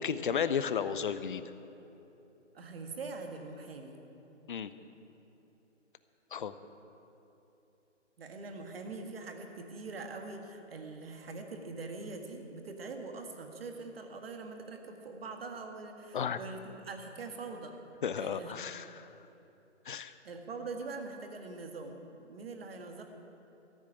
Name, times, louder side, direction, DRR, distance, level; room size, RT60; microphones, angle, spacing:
voice 1, 0.0-1.4 4.5-4.7 6.3-6.5 16.1-16.4 18.0-18.9 19.9-20.1, left 7 dB, 45° left, 13 dB, 0.6 m, -33 dB
voice 2, 2.5-3.9 8.2-17.7 18.2-18.5 20.2-22.0 22.3-23.0, right 3 dB, 50° right, 4 dB, 1.8 m, -43 dB
13.5 x 7.4 x 9.8 m, 3.0 s
hypercardioid pair, 160°, 36 cm